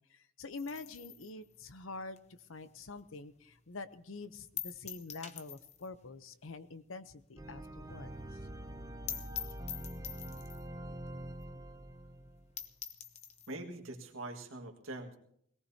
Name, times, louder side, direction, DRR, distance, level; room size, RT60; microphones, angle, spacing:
voice 1, 0.0-2.2 2.5-8.4, left 3 dB, 85° left, 13 dB, 0.8 m, -46 dB
sound 1, 0.6-3.2 3.5-3.6 4.0-4.1 4.6-6.0 6.2-6.3 6.6-6.7 7.1-7.2 7.5-7.6 7.8-7.9 8.3-8.4 8.7-8.8 9.1-10.7 11.4-11.5 11.8-11.9 12.3-12.4 12.6-13.5, left 9 dB, 35° left, 0.7 m, -44 dB
sound 2, 7.4-12.5, right 1 dB, 15° right, 0.6 m, -45 dB
voice 2, 13.5-15.2, right 2 dB, 80° right, 3 dB, 1.9 m, -43 dB
21.5 x 17.5 x 2.8 m, 0.69 s
head